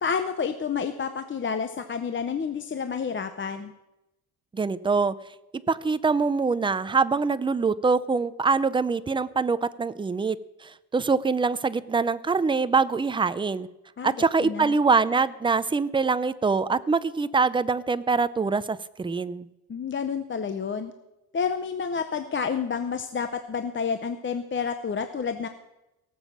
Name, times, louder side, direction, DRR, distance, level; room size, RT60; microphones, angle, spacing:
voice 1, 0.0-3.7 14.0-14.8 19.7-20.9 21.3-25.5, left 6 dB, 30° left, 8 dB, 0.7 m, -29 dB
voice 2, 4.5-5.2 5.7-13.7 14.0-19.5, right 4 dB, 15° right, 15 dB, 0.4 m, -24 dB
17.5 x 7.2 x 7.3 m, 0.94 s
cardioid pair, 135°, 38 cm